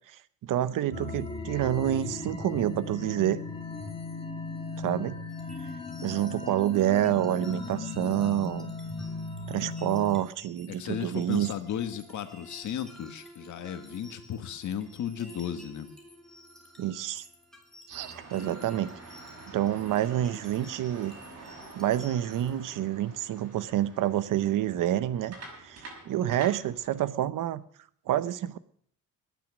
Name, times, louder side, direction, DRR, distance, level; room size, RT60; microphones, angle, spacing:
voice 1, 0.4-3.4 4.8-5.2 6.0-8.7 9.5-11.5 16.8-17.2 17.9-18.9 19.5-21.1 21.7-25.3 25.6-27.6 28.1-28.6, right 12 dB, 70° right, 16 dB, 0.9 m, -28 dB
sound 1, 0.9-10.2, left 3 dB, 15° left, 1.7 m, -37 dB
sound 2, 5.3-22.5, equal, ahead, 2.4 m, -53 dB
voice 2, 10.7-15.9 18.3-18.7, left 9 dB, 60° left, 9 dB, 1.6 m, -35 dB
sound 3, 17.9-27.0, right 3 dB, 45° right, 6.5 m, -48 dB
21.0 x 9.5 x 6.3 m, 0.63 s
cardioid pair, 165°, 33 cm